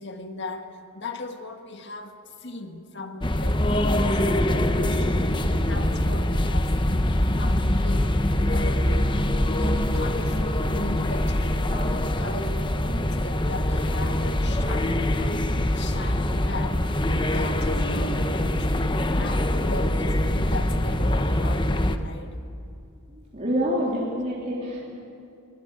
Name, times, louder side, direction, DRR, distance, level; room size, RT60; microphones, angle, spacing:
voice 1, 0.0-8.2 8.5-8.9 9.5-18.9 19.2-22.4, left 2 dB, 50° left, 6 dB, 1.8 m, -38 dB
sound 1, 3.2-22.0, left 1 dB, 20° left, 0.9 m, -24 dB
voice 2, 23.1-24.8, equal, 30° right, -6 dB, 3.6 m, -27 dB
23.5 x 20.5 x 9.1 m, 2.6 s
head